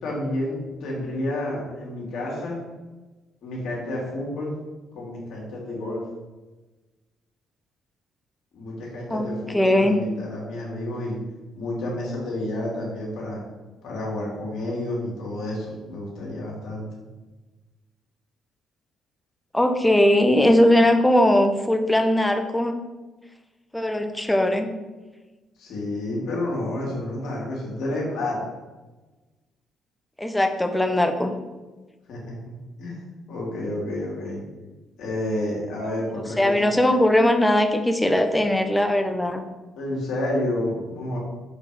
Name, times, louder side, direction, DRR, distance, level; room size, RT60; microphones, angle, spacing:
voice 1, 0.0-2.6 3.4-4.6 4.9-6.0 8.5-11.2 11.5-13.4 13.8-16.9 25.6-28.4 32.1-33.0 33.3-34.4 35.0-36.5 39.7-41.2, left 1 dB, 65° left, -3 dB, 2.7 m, -30 dB
voice 2, 9.1-10.0 19.5-22.8 23.7-24.7 30.2-31.3 36.4-39.4, left 1 dB, 10° left, 6 dB, 1.0 m, -20 dB
7.0 x 5.2 x 5.0 m, 1.2 s
hypercardioid pair, 45°, 0 cm